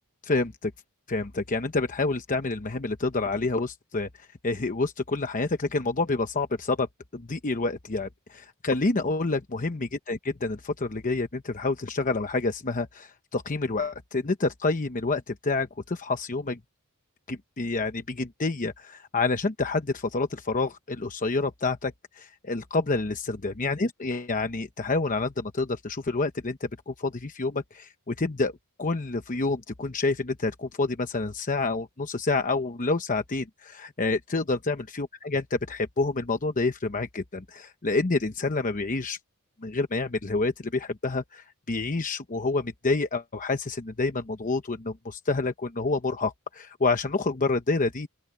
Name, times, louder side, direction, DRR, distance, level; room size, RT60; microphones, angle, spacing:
voice 1, 0.2-0.7 1.1-6.9 7.1-16.6 17.3-28.5 28.8-39.2 39.6-48.1, left 3 dB, 35° left, 0.9 m, -28 dB
open air
head